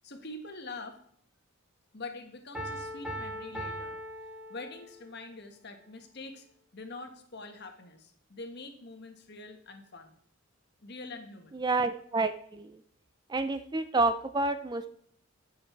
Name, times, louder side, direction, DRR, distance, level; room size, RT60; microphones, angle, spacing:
voice 1, 0.0-1.0 1.9-4.0 4.5-6.5 6.7-10.1 10.8-11.6, left 2 dB, 50° left, 5 dB, 1.5 m, -44 dB
Piano, 2.5-5.1, equal, 5° right, 4.5 m, -39 dB
voice 2, 11.5-12.8 13.3-14.9, right 3 dB, 20° right, 11 dB, 0.4 m, -29 dB
15.0 x 6.7 x 4.5 m, 0.64 s
head